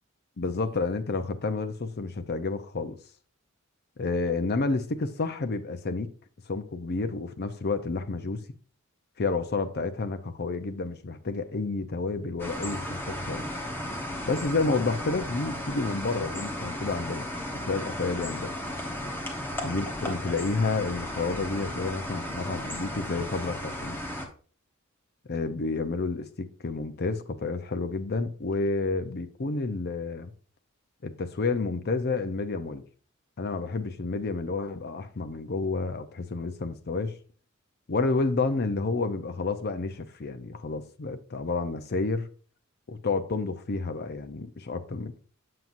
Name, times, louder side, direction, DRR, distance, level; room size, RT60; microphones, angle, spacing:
voice 1, 0.4-3.0 4.0-6.1 6.5-8.4 9.2-13.4 14.3-17.3 17.7-18.6 19.6-24.0 25.3-30.3 31.0-32.8 33.4-37.2 37.9-42.3 42.9-45.2, left 3 dB, 50° left, 0.6 m, -30 dB
sound 1, 12.4-24.3, left 1 dB, 10° left, 1.0 m, -35 dB
7.7 x 7.2 x 2.6 m
head